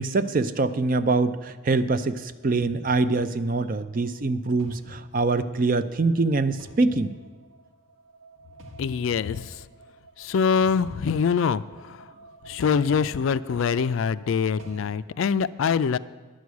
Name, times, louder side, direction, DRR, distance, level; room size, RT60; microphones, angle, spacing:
voice 1, 0.0-7.1, right 3 dB, 40° right, 12 dB, 0.4 m, -24 dB
sound 1, 2.4-14.9, right 1 dB, 80° right, 1.4 m, -48 dB
voice 2, 8.8-9.6 10.2-12.1 12.4-16.0, left 6 dB, 65° left, 16 dB, 0.3 m, -24 dB
11.5 x 6.3 x 8.3 m, 1.3 s
head